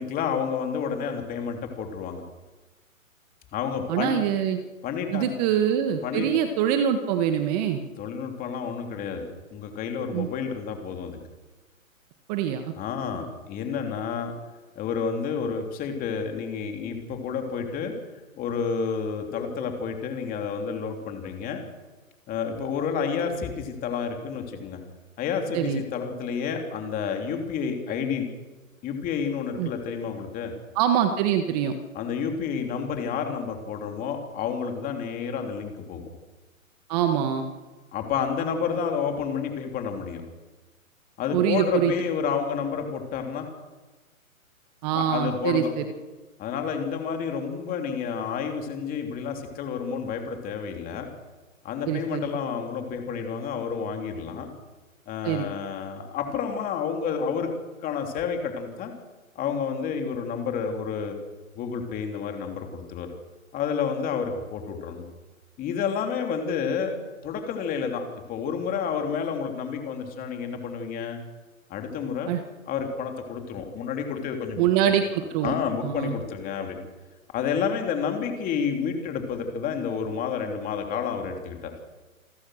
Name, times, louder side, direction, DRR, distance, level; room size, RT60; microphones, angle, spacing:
voice 1, 0.0-2.2 3.5-4.2 4.8-5.3 6.0-6.3 8.0-11.2 12.7-14.3 14.7-17.9 18.4-21.6 22.3-24.8 25.2-28.3 28.8-30.5 31.9-36.0 37.9-40.2 41.2-43.5 44.9-45.7 46.4-51.1 51.6-54.5 55.1-57.5 57.8-58.9 59.3-61.1 61.5-63.1 63.5-65.1 65.6-67.0 67.2-68.0 68.3-71.2 71.7-72.3 72.7-74.9 75.4-76.8 77.3-81.7, left 6 dB, 20° left, 4 dB, 3.2 m, -30 dB
voice 2, 3.9-4.6 5.1-7.8 10.1-10.3 12.3-12.7 25.5-25.8 29.6-29.7 30.7-31.8 36.9-37.4 41.3-41.9 44.8-45.8 51.9-52.3 55.2-55.5 72.3-72.4 74.6-75.5 75.8-76.1, right 9 dB, 30° right, 8 dB, 1.5 m, -24 dB
28.5 x 14.5 x 6.5 m, 1.2 s
hypercardioid pair, 140°, 42 cm